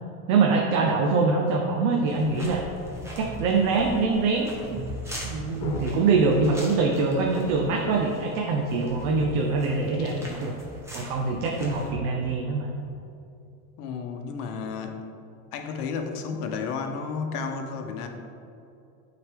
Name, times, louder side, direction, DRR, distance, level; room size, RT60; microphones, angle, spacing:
voice 1, 0.3-2.6 3.1-4.8 5.2-10.5 10.9-12.7, right 4 dB, 60° right, 1 dB, 0.7 m, -24 dB
sound 1, 2.1-11.9, equal, 5° right, 1.0 m, -39 dB
sound 2, 5.6-7.6 8.2-8.5 8.9-10.6, left 3 dB, 65° left, 1.2 m, -41 dB
voice 2, 13.8-15.0 15.5-18.1, left 5 dB, 80° left, 5 dB, 0.9 m, -32 dB
8.6 x 3.9 x 3.5 m, 2.7 s
supercardioid pair, 135°, 44 cm